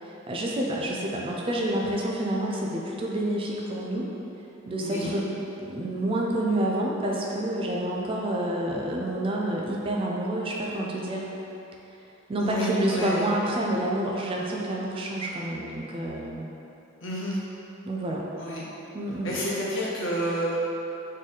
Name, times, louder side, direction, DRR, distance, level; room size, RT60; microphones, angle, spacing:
voice 1, 0.0-4.1 4.7-5.3 5.6-11.3 12.3-16.5 17.8-18.3 18.9-19.4, right 1 dB, 25° right, -2 dB, 0.4 m, -28 dB
voice 2, 12.4-13.3 17.0-17.4 18.4-18.6 19.2-20.6, equal, 65° left, -6 dB, 0.9 m, -29 dB
3.8 x 3.1 x 4.1 m, 3.0 s
head